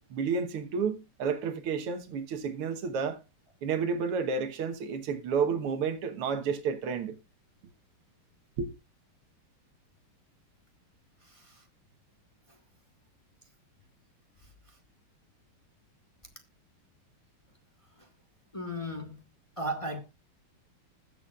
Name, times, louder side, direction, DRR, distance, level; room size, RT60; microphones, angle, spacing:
voice 1, 0.1-3.2 3.6-7.2 8.6-8.7, right 6 dB, 80° right, 2.1 m, -31 dB
voice 2, 11.2-11.6 12.5-12.6 14.4-14.8 18.0-18.1 18.5-19.2 19.6-20.0, equal, 20° left, 1.2 m, -37 dB
20.5 x 7.0 x 2.4 m
omnidirectional pair, 2.4 m